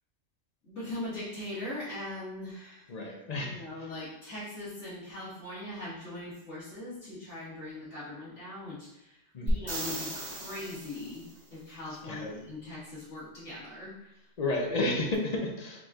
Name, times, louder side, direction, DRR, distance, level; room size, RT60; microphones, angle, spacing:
voice 1, 0.6-8.8 9.4-13.9, left 1 dB, 75° left, -12 dB, 2.0 m, -40 dB
voice 2, 2.9-3.9 9.3-9.7 12.0-12.4 14.4-15.8, left 2 dB, 45° left, 1 dB, 0.6 m, -32 dB
sound 1, 9.5-11.3 15.1-15.2, right 1 dB, 30° right, 0.9 m, -35 dB
4.7 x 4.0 x 2.4 m, 0.88 s
omnidirectional pair, 1.3 m